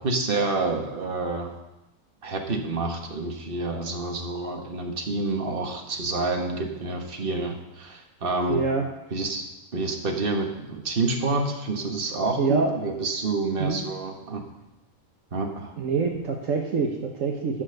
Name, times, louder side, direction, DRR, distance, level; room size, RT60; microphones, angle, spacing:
voice 1, 0.0-1.5 2.2-8.6 9.1-9.4 9.7-14.4 15.3-15.7, right 3 dB, 40° right, 3 dB, 1.5 m, -28 dB
voice 2, 8.5-8.9 12.4-12.7 13.6-13.8 15.8-17.6, right 4 dB, 65° right, 1 dB, 1.3 m, -25 dB
11.0 x 6.4 x 6.5 m, 0.97 s
omnidirectional pair, 1.5 m